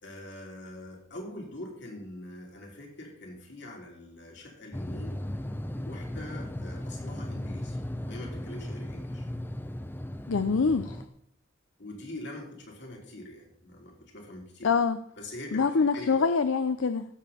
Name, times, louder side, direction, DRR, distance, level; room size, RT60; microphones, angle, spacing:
voice 1, 0.0-5.2 5.7-7.8 8.1-9.3 10.8-11.0 11.8-14.7 15.2-16.3, left 1 dB, 60° left, -1 dB, 3.5 m, -43 dB
sound 1, 4.7-11.1, left 1 dB, 10° left, 0.6 m, -36 dB
voice 2, 10.3-11.0 14.6-15.0 15.5-17.1, left 5 dB, 85° left, 11 dB, 0.6 m, -25 dB
16.0 x 7.1 x 4.3 m, 0.69 s
head